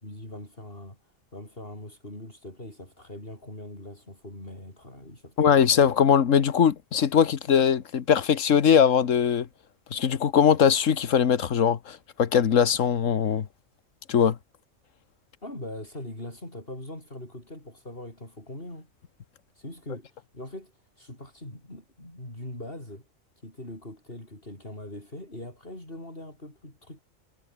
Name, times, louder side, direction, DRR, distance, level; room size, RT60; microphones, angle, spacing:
voice 1, 0.0-5.7 15.4-18.9 19.5-23.0 23.4-27.0, left 1 dB, 45° left, 8.3 m, -41 dB
voice 2, 5.4-9.5 9.9-13.5 14.1-14.4, left 8 dB, 85° left, 1.6 m, -21 dB
omnidirectional pair, 1.3 m